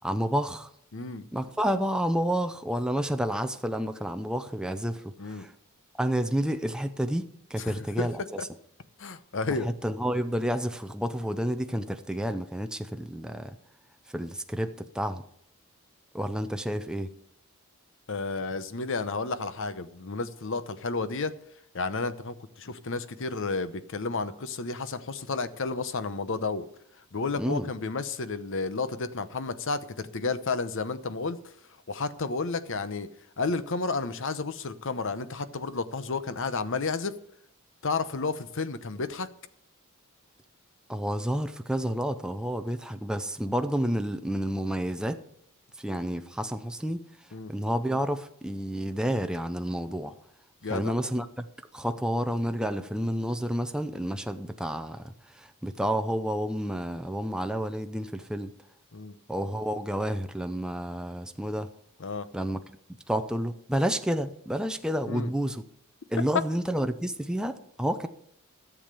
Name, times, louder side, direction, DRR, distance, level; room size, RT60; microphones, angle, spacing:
voice 1, 0.0-0.7 1.3-5.5 6.0-8.4 9.6-13.6 14.1-15.2 16.1-17.1 27.3-27.7 40.9-45.2 45.8-47.0 47.5-50.1 50.7-51.5 51.7-58.5 59.3-61.7 62.3-62.6 63.1-65.6 66.1-68.1, equal, 5° right, 0.6 m, -30 dB
voice 2, 0.9-1.3 5.2-5.5 7.6-8.1 9.0-9.7 18.1-21.4 21.7-26.6 27.1-31.4 31.9-33.1 33.4-37.2 37.8-39.3 47.3-47.5 50.6-50.9 58.9-59.1 62.0-62.3 65.1-65.3, left 3 dB, 65° left, 0.9 m, -31 dB
13.5 x 7.2 x 6.8 m
head